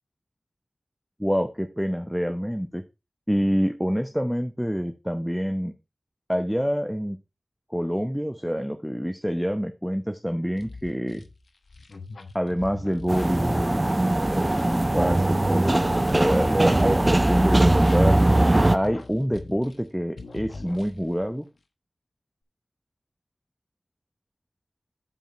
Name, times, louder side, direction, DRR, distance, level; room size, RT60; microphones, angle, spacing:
voice 1, 1.2-2.8 3.3-5.7 6.3-7.2 7.7-11.2 12.3-13.8 14.3-18.2 18.7-21.5, equal, ahead, 8 dB, 0.9 m, -27 dB
sound 1, 10.6-17.1 17.4-19.9 20.2-21.2, left 3 dB, 80° left, 1.1 m, -42 dB
Room tone night street dog barking far, 13.1-18.8, right 1 dB, 30° right, 0.5 m, -20 dB
7.7 x 5.1 x 5.3 m, 0.27 s
cardioid pair, 45°, 0 cm